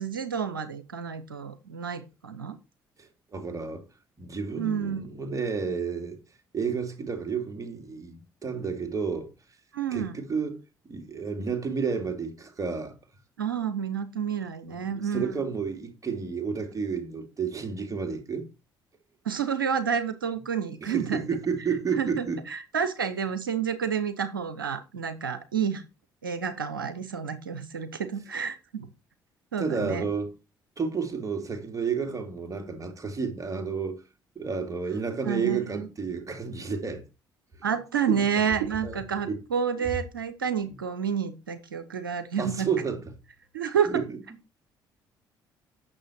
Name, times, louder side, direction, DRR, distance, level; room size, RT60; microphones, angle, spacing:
voice 1, 0.0-2.6 4.6-5.0 9.7-10.2 13.4-15.3 19.2-21.3 22.0-25.8 26.2-28.9 29.5-30.1 35.3-35.9 37.6-42.7 43.5-44.0, right 7 dB, 85° right, 0.8 m, -29 dB
voice 2, 3.0-3.8 4.2-6.2 6.5-9.3 9.9-10.5 10.9-13.0 14.7-18.5 20.8-22.4 29.6-30.3 30.8-34.0 34.3-37.0 38.1-38.4 38.8-39.0 39.2-39.4 40.6-40.7 42.4-43.0 43.9-44.2, right 5 dB, 30° right, 3.0 m, -31 dB
9.0 x 6.5 x 4.5 m
figure-of-eight pair, 45°, 11 cm